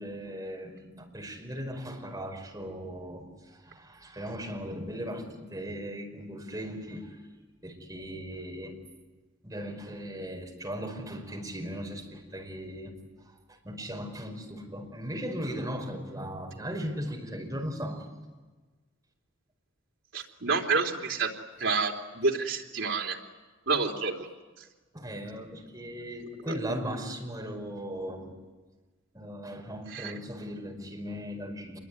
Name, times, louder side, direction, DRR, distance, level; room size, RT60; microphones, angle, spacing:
voice 1, 0.0-7.2 7.6-8.8 9.4-13.0 13.5-18.1 24.9-28.3 29.1-31.8, equal, 20° right, 1 dB, 5.1 m, -38 dB
voice 2, 20.1-21.3 21.6-23.2 23.7-24.3 29.9-30.1, right 4 dB, 75° right, 0 dB, 3.5 m, -28 dB
27.0 x 22.5 x 9.7 m, 1.3 s
head